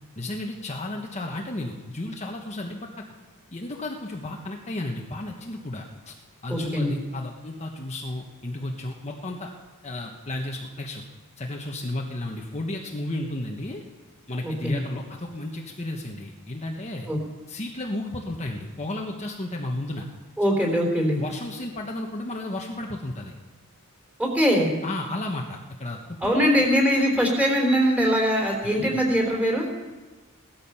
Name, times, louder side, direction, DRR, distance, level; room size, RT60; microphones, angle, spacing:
voice 1, 0.1-3.0 3.5-6.1 6.4-9.5 9.8-11.0 11.4-13.8 14.3-17.1 17.5-20.1 21.2-23.3 24.8-26.5 28.6-29.0, left 1 dB, 30° left, 0 dB, 1.2 m, -33 dB
voice 2, 6.5-7.0 14.4-14.8 17.1-17.2 20.4-21.2 24.2-24.7 26.2-29.7, equal, 5° right, 0 dB, 3.6 m, -22 dB
17.0 x 13.5 x 5.6 m, 1.3 s
head